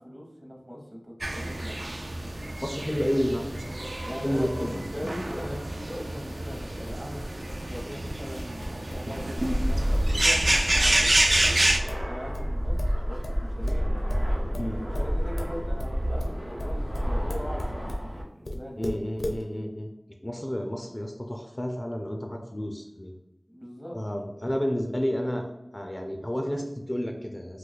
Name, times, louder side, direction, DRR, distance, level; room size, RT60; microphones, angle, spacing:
voice 1, 0.0-1.8 4.0-11.1 11.4-11.6 12.0-12.8 13.0-13.9 14.8-17.9 18.3-18.9 23.5-24.0, equal, 35° right, -2 dB, 0.8 m, -40 dB
sound 1, 1.2-11.8, right 1 dB, 65° right, 0.3 m, -28 dB
voice 2, 2.6-3.9 4.2-4.8 14.6-14.8 18.8-19.9 20.2-23.1 23.9-25.5 25.7-27.6, equal, 30° left, 2 dB, 0.3 m, -31 dB
sound 2, 6.5-12.1 12.3-18.1 18.4-19.4, left 1 dB, 90° left, 0.5 m, -35 dB
Fixed-wing aircraft airplane, 9.4-18.2, equal, 90° right, 1.1 m, -29 dB
2.7 x 2.2 x 3.9 m, 0.94 s
wide cardioid pair, 45°, 0 cm